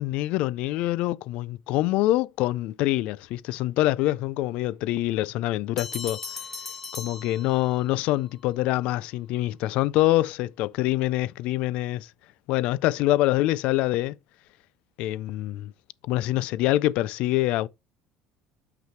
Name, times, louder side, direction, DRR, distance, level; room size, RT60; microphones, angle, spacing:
voice 1, 0.0-6.2 6.9-12.1 12.5-14.2 15.0-15.7 16.0-17.7, left 16 dB, 60° left, 0.3 m, -25 dB
Bell, 5.8-8.0, left 4 dB, 10° left, 1.1 m, -38 dB
5.9 x 5.7 x 4.4 m
cardioid pair, 150°, 2 cm